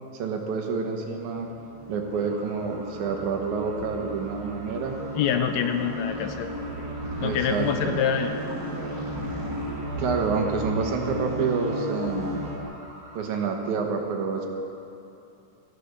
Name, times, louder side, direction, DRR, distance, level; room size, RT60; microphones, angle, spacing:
voice 1, 0.1-1.5 1.9-5.0 7.2-8.0 10.0-12.4 13.2-14.5, right 5 dB, 80° right, 3 dB, 2.6 m, -28 dB
sound 1, 1.2-12.6, right 1 dB, 35° right, 2.1 m, -34 dB
sound 2, 2.1-13.5, right 1 dB, 15° right, 1.2 m, -47 dB
voice 2, 5.1-6.5 7.2-8.3, left 8 dB, 80° left, 7 dB, 1.8 m, -25 dB
14.5 x 8.3 x 6.6 m, 2.7 s
omnidirectional pair, 3.4 m